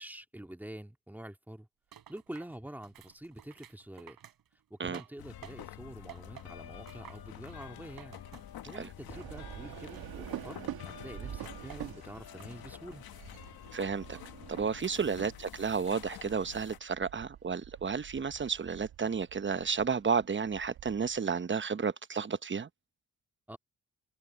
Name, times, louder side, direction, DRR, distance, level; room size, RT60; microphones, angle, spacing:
voice 1, 0.0-1.7 2.1-4.2 4.7-8.2 8.7-13.0 15.0-15.2 23.5-23.6, right 1 dB, 5° right, 2.0 m, -46 dB
sound 1, 1.9-5.8 6.1-8.9 9.2-10.8 11.4-12.0 12.4-13.0 13.4-14.3 14.7-15.1, right 10 dB, 75° right, 3.7 m, -54 dB
sound 2, 5.2-16.8, left 11 dB, 80° left, 1.3 m, -48 dB
sound 3, 9.1-21.2, right 12 dB, 90° right, 1.5 m, -47 dB
voice 2, 13.7-14.2 14.5-22.7, right 6 dB, 35° right, 0.9 m, -32 dB
cardioid pair, 70°, 36 cm